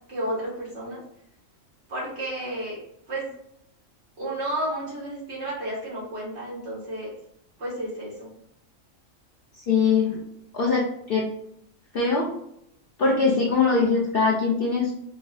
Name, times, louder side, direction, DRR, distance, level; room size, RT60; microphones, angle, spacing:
voice 1, 0.1-1.0 1.9-2.8 3.1-3.2 4.2-7.1 7.6-8.3, right 1 dB, 55° right, -6 dB, 1.7 m, -32 dB
voice 2, 9.7-10.2 10.5-11.2 11.9-12.3 13.0-14.9, left 4 dB, 60° left, -3 dB, 0.6 m, -22 dB
4.5 x 2.0 x 2.6 m, 0.74 s
omnidirectional pair, 1.3 m